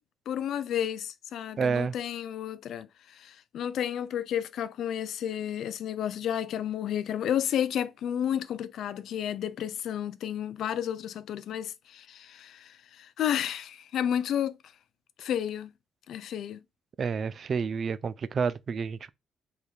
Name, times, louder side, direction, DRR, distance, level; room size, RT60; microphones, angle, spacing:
voice 1, 0.3-14.6 15.2-15.7 16.1-16.6, left 9 dB, 75° left, 0.4 m, -32 dB
voice 2, 1.6-1.9 17.0-19.1, right 5 dB, 50° right, 0.3 m, -29 dB
3.4 x 2.3 x 4.4 m
cardioid pair, 90°, 0 cm